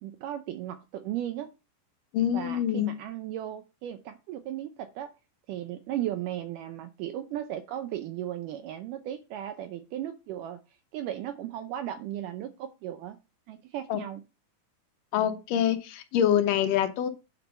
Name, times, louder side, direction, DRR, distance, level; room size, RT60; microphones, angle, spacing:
voice 1, 0.0-1.5 2.3-5.1 5.5-10.6 10.9-13.2 13.5-14.2, right 12 dB, 85° right, 1.8 m, -36 dB
voice 2, 2.1-2.9 13.9-14.0 15.1-17.1, left 10 dB, 75° left, 2.1 m, -25 dB
9.5 x 4.5 x 5.4 m
omnidirectional pair, 4.6 m